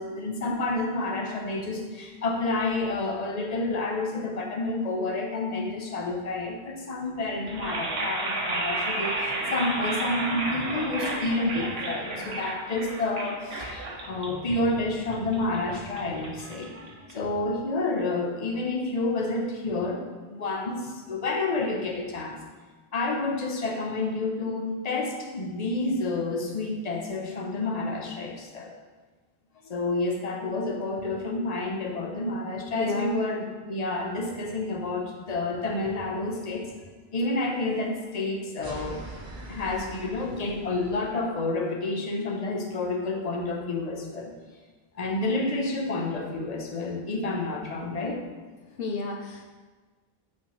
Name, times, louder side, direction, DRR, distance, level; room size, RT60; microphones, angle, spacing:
voice 1, 0.0-16.7 17.1-22.4 22.9-28.7 29.6-36.7 37.1-39.0 39.5-44.3 44.9-48.2, left 2 dB, 45° left, 1 dB, 0.8 m, -29 dB
sound 1, 7.4-17.5, right 2 dB, 80° right, 1.2 m, -32 dB
voice 2, 32.8-33.2 48.8-49.5, left 3 dB, 70° left, 1 dB, 0.8 m, -31 dB
sound 2, 38.6-41.2, right 1 dB, 60° right, 1.3 m, -42 dB
8.5 x 4.1 x 3.0 m, 1.4 s
omnidirectional pair, 1.0 m